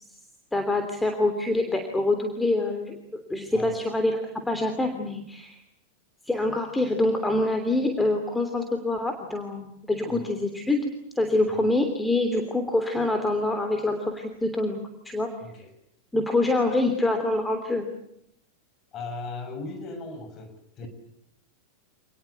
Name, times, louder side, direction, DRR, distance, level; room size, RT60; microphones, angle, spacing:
voice 1, 0.5-3.0 3.3-4.2 4.5-5.6 6.3-10.9 11.2-15.3 16.1-17.8, left 2 dB, 5° left, 5 dB, 3.2 m, -25 dB
voice 2, 3.5-3.8 10.1-10.3 11.5-11.7 15.4-15.7 18.9-20.9, left 3 dB, 30° left, 7 dB, 6.9 m, -38 dB
28.0 x 20.0 x 8.2 m, 0.78 s
figure-of-eight pair, 90°, 0 cm